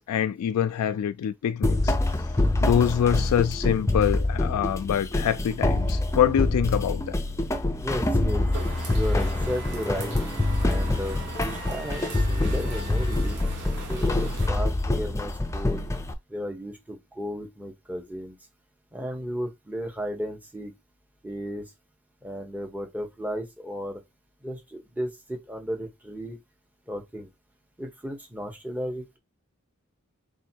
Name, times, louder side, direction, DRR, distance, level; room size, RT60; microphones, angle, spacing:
voice 1, 0.0-2.0 2.6-7.2, left 9 dB, 85° left, 0.3 m, -25 dB
sound 1, 1.6-16.1, left 2 dB, 15° left, 0.4 m, -26 dB
voice 2, 7.8-8.5 8.9-10.1 10.6-13.4 13.9-15.9 16.3-18.3 18.9-20.7 21.2-21.6 22.2-24.0 24.4-26.4 26.9-27.3 27.8-29.2, equal, 5° right, 0.8 m, -34 dB
Wind instrument woodwind instrument, 8.2-13.3, right 1 dB, 35° right, 1.2 m, -45 dB
sound 2, 8.5-14.5, right 3 dB, 50° right, 1.5 m, -40 dB
3.6 x 2.7 x 4.4 m
head